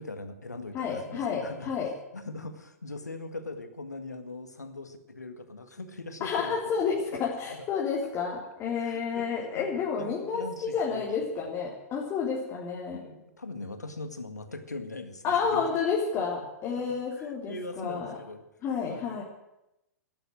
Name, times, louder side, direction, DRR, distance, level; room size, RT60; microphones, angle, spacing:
voice 1, 0.0-1.7 2.1-6.6 7.1-7.6 8.8-11.0 11.4-11.5 12.9-15.6 16.9-18.4 18.9-19.2, left 2 dB, 85° left, 9 dB, 1.9 m, -41 dB
voice 2, 0.7-1.9 6.2-13.0 15.2-18.2 18.6-19.2, left 6 dB, 30° left, -4 dB, 3.5 m, -30 dB
13.0 x 11.5 x 9.0 m, 0.90 s
figure-of-eight pair, 105°, 9 cm